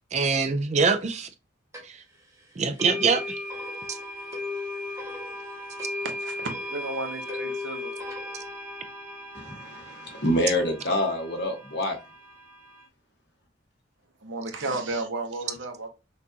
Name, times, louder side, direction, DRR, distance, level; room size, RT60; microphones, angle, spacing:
voice 1, 0.1-1.3 2.6-3.4, right 4 dB, 35° right, 0.3 m, -23 dB
sound 1, 1.7-1.8 2.8-12.9, left 2 dB, 15° right, 1.1 m, -36 dB
voice 2, 6.0-8.0 14.2-15.9, right 2 dB, 75° right, 0.9 m, -33 dB
voice 3, 9.3-12.0, left 1 dB, 55° left, 1.4 m, -27 dB
6.0 x 2.5 x 2.7 m
head